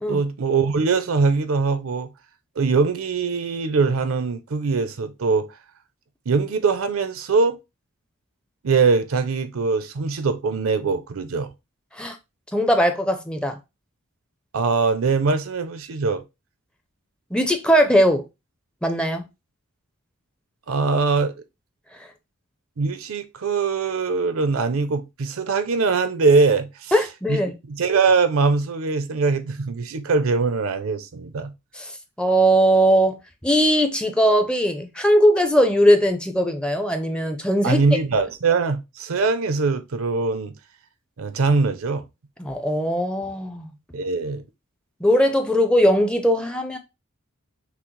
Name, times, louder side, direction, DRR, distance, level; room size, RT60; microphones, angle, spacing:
voice 1, 0.1-2.1 2.6-5.5 6.3-7.6 8.6-11.5 14.5-16.2 20.7-21.3 22.8-26.9 27.3-27.4 27.7-31.5 37.6-40.5 41.2-42.0 43.9-44.4, right 4 dB, 70° right, 0.5 m, -22 dB
voice 2, 12.5-13.6 17.3-18.2 18.8-19.3 26.9-27.5 31.7-31.9 32.2-33.2 33.4-37.8 42.4-43.7 45.0-46.8, equal, 5° left, 0.5 m, -19 dB
5.9 x 2.0 x 3.1 m
head